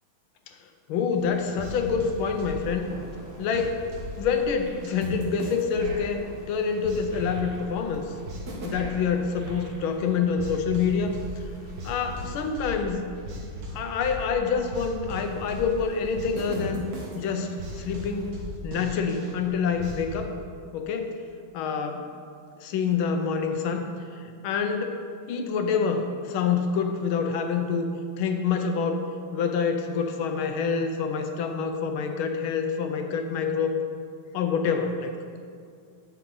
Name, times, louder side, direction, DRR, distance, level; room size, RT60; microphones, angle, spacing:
voice 1, 0.9-2.9 3.4-3.8 4.2-8.0 8.6-11.2 11.8-13.1 13.7-16.9 17.1-18.4 18.6-20.3 20.7-21.2 21.5-22.1 22.6-25.0 25.3-27.9 28.2-29.1 29.3-33.8 34.3-35.1, left 6 dB, 80° left, 6 dB, 1.5 m, -27 dB
sound 1, 1.2-20.3, right 1 dB, 50° right, 1.5 m, -38 dB
7.8 x 7.5 x 3.8 m, 2.3 s
omnidirectional pair, 2.3 m